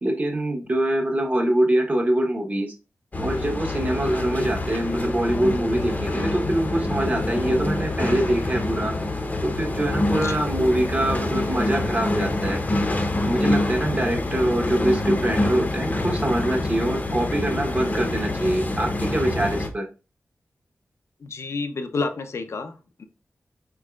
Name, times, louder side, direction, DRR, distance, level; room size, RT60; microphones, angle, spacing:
voice 1, 0.0-2.7 3.2-8.9 9.4-12.6 13.2-19.8, right 1 dB, 35° right, 1 dB, 1.2 m, -24 dB
sound 1, 3.1-19.7, left 2 dB, 35° left, 0.7 m, -26 dB
voice 2, 21.2-23.0, left 3 dB, 70° left, 7 dB, 0.7 m, -30 dB
4.7 x 4.5 x 2.3 m, 0.32 s
wide cardioid pair, 110°, 5 cm